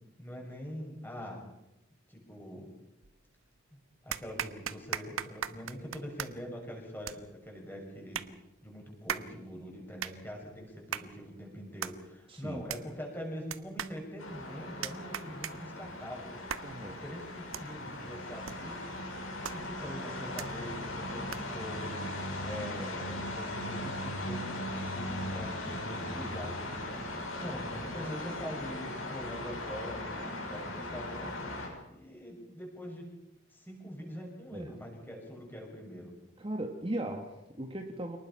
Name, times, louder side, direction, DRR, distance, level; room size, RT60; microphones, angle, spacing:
voice 1, 0.2-1.5 2.1-2.7 3.7-8.2 8.6-16.4 16.8-19.0 19.5-31.4 31.9-33.1 33.5-36.1, equal, 10° left, 0 dB, 6.4 m, -43 dB
sound 1, 3.0-3.6 4.1-21.7, right 8 dB, 80° right, 1.0 m, -42 dB
voice 2, 12.3-12.7 16.6-17.0 34.5-34.7 36.4-38.2, right 1 dB, 25° right, 3 dB, 1.7 m, -38 dB
sound 2, 14.2-31.7, left 1 dB, 90° left, 6.4 m, -38 dB
28.0 x 19.5 x 5.7 m, 0.94 s
head